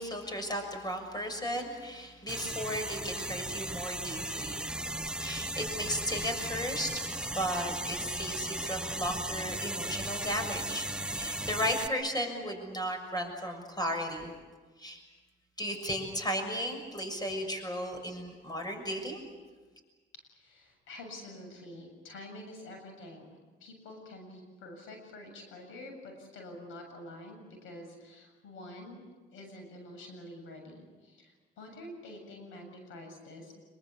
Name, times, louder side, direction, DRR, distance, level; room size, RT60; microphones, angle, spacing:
voice 1, 0.0-4.6 5.2-6.9 7.3-14.3 14.8-15.0 15.6-19.2, equal, 20° left, 5 dB, 6.7 m, -35 dB
sound 1, 2.3-11.9, right 1 dB, 5° right, 0.9 m, -36 dB
voice 2, 20.3-29.0 29.3-33.5, left 1 dB, 85° left, 4 dB, 7.5 m, -47 dB
26.0 x 23.5 x 8.5 m, 1.3 s
cardioid pair, 90°, 20 cm